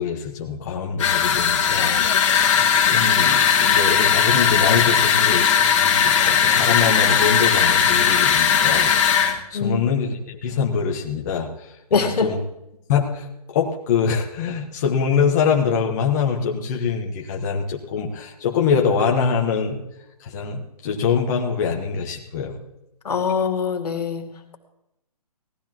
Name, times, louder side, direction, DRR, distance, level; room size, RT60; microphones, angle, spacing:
voice 1, 0.0-9.1 9.5-11.5 11.9-12.4 12.9-19.8 20.2-22.6, left 6 dB, 25° left, -1 dB, 1.2 m, -24 dB
sound 1, 1.0-9.4, left 8 dB, 50° left, 1.8 m, -18 dB
voice 2, 11.9-12.3 23.0-24.2, left 5 dB, 75° left, 4 dB, 2.2 m, -22 dB
17.5 x 13.0 x 3.0 m, 0.84 s
hypercardioid pair, 165°, 20 cm